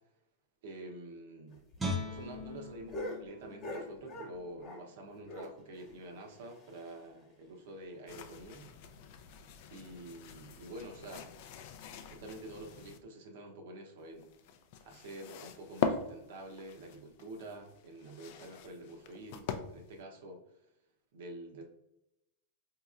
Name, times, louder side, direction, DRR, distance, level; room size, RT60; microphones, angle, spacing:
voice 1, 0.6-1.6 2.1-8.7 9.7-11.3 12.0-14.3 14.8-20.4 21.1-21.6, right 1 dB, 70° right, 2 dB, 0.8 m, -47 dB
sound 1, 1.5-4.9 5.2-7.2 7.5-7.6 7.9-8.0 8.4-8.5 9.1-9.4 10.2-10.3, left 1 dB, 25° left, 1.1 m, -45 dB
Guitar, 1.8-4.9 5.3-5.5, left 1 dB, 10° right, 0.5 m, -41 dB
sound 2, 8.1-13.0 14.0-20.0, left 6 dB, 55° left, 0.4 m, -42 dB
4.0 x 2.8 x 2.4 m, 0.85 s
supercardioid pair, 140°, 0 cm